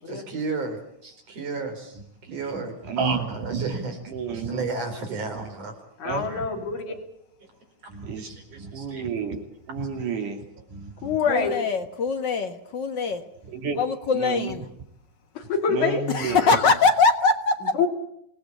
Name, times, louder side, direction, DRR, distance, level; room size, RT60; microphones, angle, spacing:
voice 1, 0.1-2.0 2.3-4.0 4.3-5.7 6.3-6.4 8.2-9.1, right 3 dB, 55° right, 6 dB, 5.1 m, -33 dB
voice 2, 2.3-4.7 6.0-6.5 6.9-7.0 7.9-10.4 10.7-11.2 13.4-13.8 14.1-14.6 15.7-16.6, right 5 dB, 85° right, 3 dB, 4.5 m, -31 dB
voice 3, 6.0-7.0 11.0-11.5 15.3-16.0 17.8-17.9, left 5 dB, 70° left, 0 dB, 4.6 m, -25 dB
voice 4, 11.3-13.2 13.8-14.6 16.1-17.7, left 4 dB, 45° left, 6 dB, 1.6 m, -22 dB
27.0 x 18.0 x 8.5 m, 0.76 s
omnidirectional pair, 3.6 m